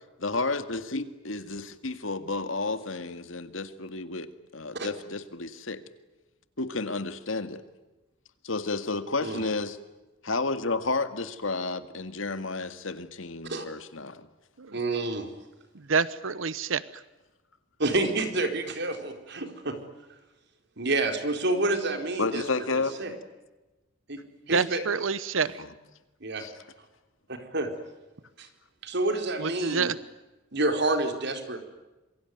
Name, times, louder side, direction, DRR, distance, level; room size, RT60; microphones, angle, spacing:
voice 1, 0.2-5.8 6.6-7.6 8.4-9.8 10.2-14.3 22.2-22.9 25.6-25.7 26.4-26.5, left 3 dB, 80° left, 10 dB, 2.1 m, -31 dB
voice 2, 14.7-15.3 17.8-19.7 20.8-22.4 23.0-23.1 24.1-24.2 24.5-24.8 26.2-26.5 27.5-27.7 28.4-28.5 28.8-29.9 30.5-31.6, right 2 dB, 60° right, 6 dB, 4.3 m, -28 dB
voice 3, 15.9-16.8 24.5-25.5 29.4-29.9, right 5 dB, 85° right, 17 dB, 0.9 m, -27 dB
26.5 x 23.5 x 9.5 m, 1.1 s
head